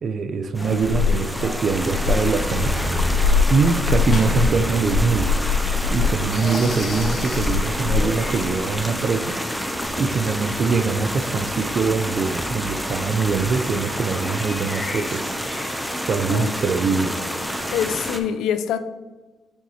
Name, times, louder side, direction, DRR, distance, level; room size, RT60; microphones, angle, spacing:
voice 1, 0.0-2.8 3.5-5.4 5.9-9.4 10.0-15.3 16.0-17.2, right 5 dB, 45° right, 0.5 m, -23 dB
sound 1, 0.6-18.1, left 5 dB, 45° left, 1.7 m, -27 dB
sound 2, 0.6-18.2, equal, ahead, 0.6 m, -29 dB
sound 3, 0.9-14.6, right 1 dB, 20° right, 1.3 m, -37 dB
voice 2, 17.7-18.8, left 9 dB, 85° left, 0.4 m, -25 dB
6.5 x 6.1 x 2.9 m
cardioid pair, 115°, 0 cm